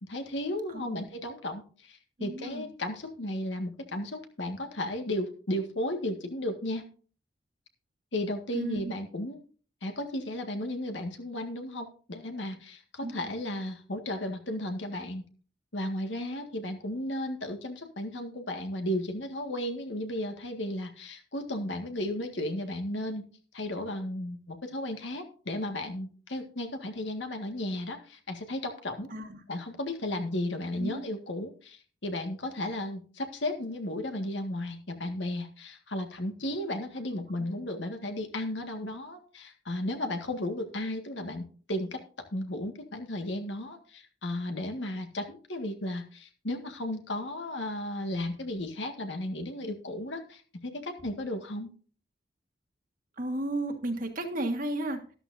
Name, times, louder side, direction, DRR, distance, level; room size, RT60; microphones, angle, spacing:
voice 1, 0.0-6.9 8.1-9.4 9.8-15.2 15.7-23.2 23.5-29.1 29.5-41.4 41.7-42.0 42.3-51.7, left 1 dB, 80° left, 5 dB, 1.8 m, -34 dB
voice 2, 0.7-1.0 2.2-2.7 8.5-8.9 13.0-13.3 29.1-29.4 30.8-31.1 53.2-55.1, right 1 dB, 50° right, 6 dB, 1.5 m, -33 dB
13.0 x 12.0 x 2.7 m, 0.41 s
head